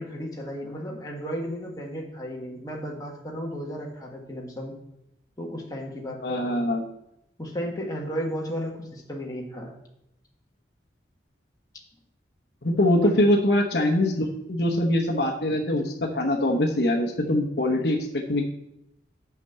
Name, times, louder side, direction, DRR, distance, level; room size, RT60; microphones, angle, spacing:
voice 1, 0.0-4.7 5.4-6.7 7.4-9.7 13.0-13.1, equal, 20° left, -2 dB, 1.4 m, -34 dB
voice 2, 6.2-6.8 12.6-18.5, left 1 dB, 65° left, 2 dB, 1.0 m, -23 dB
5.9 x 5.9 x 6.8 m, 0.83 s
head